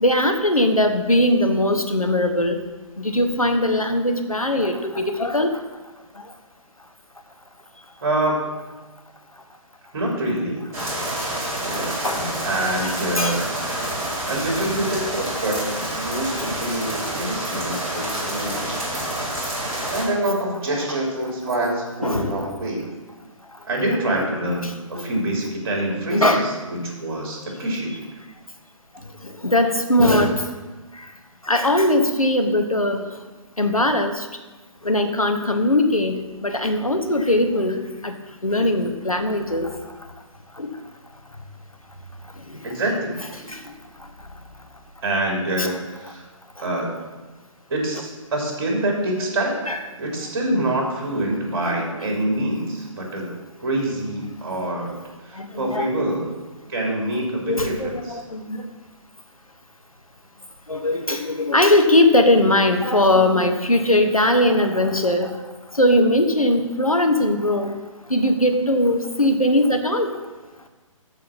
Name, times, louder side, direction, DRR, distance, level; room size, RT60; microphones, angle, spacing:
voice 1, 0.0-2.6 3.0-5.6 11.8-12.2 12.8-13.4 16.4-16.6 22.0-22.4 24.6-25.0 26.1-26.5 29.4-30.5 31.5-33.0 33.6-34.3 34.8-38.2 38.4-39.7 40.6-40.7 43.5-43.6 45.6-45.7 49.7-49.8 51.6-51.8 55.4-55.8 57.5-58.6 60.7-65.3 65.8-67.8 68.1-70.1, left 1 dB, 90° left, 5 dB, 1.2 m, -20 dB
voice 2, 8.0-8.6 9.9-10.7 11.6-13.4 14.3-18.8 19.9-22.9 23.6-27.9 42.6-43.1 43.4-43.6 45.0-46.2 46.6-47.1 47.7-49.6 50.0-53.3 53.6-56.3 56.7-58.2, right 1 dB, 45° right, -1 dB, 3.1 m, -26 dB
sound 1, 10.7-20.0, right 1 dB, 15° right, 2.8 m, -28 dB
13.5 x 4.9 x 5.9 m, 1.2 s
figure-of-eight pair, 135°, 17 cm